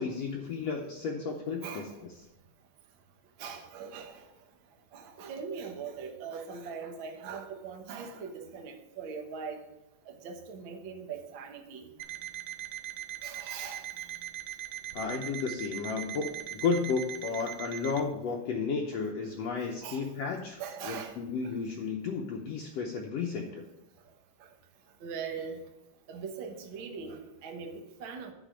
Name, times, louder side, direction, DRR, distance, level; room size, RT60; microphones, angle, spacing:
voice 1, 0.0-1.9 14.9-23.7, left 5 dB, 70° left, 1 dB, 1.7 m, -33 dB
voice 2, 1.6-2.0 3.4-4.3 4.9-9.6 10.1-11.9 13.2-13.9 19.8-20.1 20.6-21.2 21.4-21.6 24.4-24.5 25.0-25.6 26.1-28.3, right 6 dB, 60° right, 4 dB, 1.3 m, -41 dB
Alarm, 12.0-18.1, right 11 dB, 85° right, 2.2 m, -40 dB
10.0 x 4.2 x 7.5 m, 0.96 s
omnidirectional pair, 3.7 m